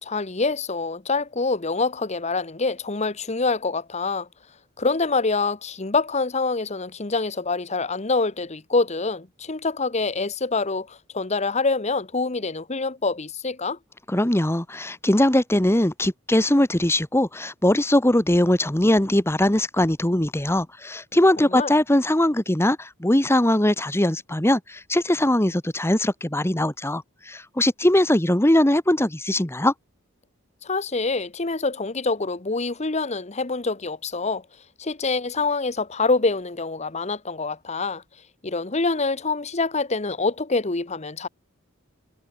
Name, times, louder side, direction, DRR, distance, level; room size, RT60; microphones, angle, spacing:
voice 1, 0.0-4.3 4.8-13.8 21.4-21.7 30.6-34.4 34.8-38.0 38.4-41.3, left 3 dB, 35° left, 1.1 m, -25 dB
voice 2, 14.1-29.7, left 1 dB, 10° left, 1.3 m, -21 dB
head